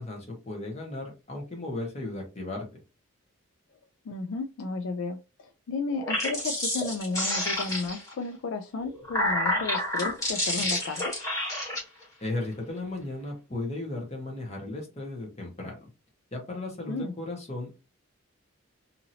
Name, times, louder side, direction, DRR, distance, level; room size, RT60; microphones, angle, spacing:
voice 1, 0.0-2.6 12.2-15.9 16.3-17.8, left 2 dB, 30° left, 0 dB, 1.0 m, -35 dB
voice 2, 4.1-11.2 16.9-17.1, left 3 dB, 70° left, 6 dB, 0.4 m, -33 dB
sound 1, 5.9-8.1 8.8-11.8, left 1 dB, 15° left, 1.3 m, -29 dB
2.8 x 2.7 x 2.7 m, 0.29 s
head